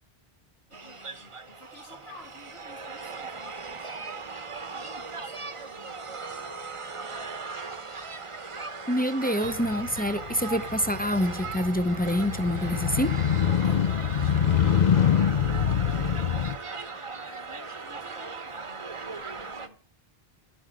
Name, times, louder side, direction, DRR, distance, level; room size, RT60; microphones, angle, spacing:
voice 1, 0.7-4.4 4.7-6.4 13.6-15.6 17.1-19.8, left 2 dB, 90° left, 3.4 m, -53 dB
sound 1, 0.7-19.7, right 4 dB, 35° right, 0.9 m, -38 dB
voice 2, 8.9-13.1, equal, 15° left, 0.4 m, -26 dB
Motorcycle, 9.4-16.6, left 8 dB, 50° left, 0.7 m, -25 dB
11.5 x 8.0 x 6.3 m
omnidirectional pair, 1.0 m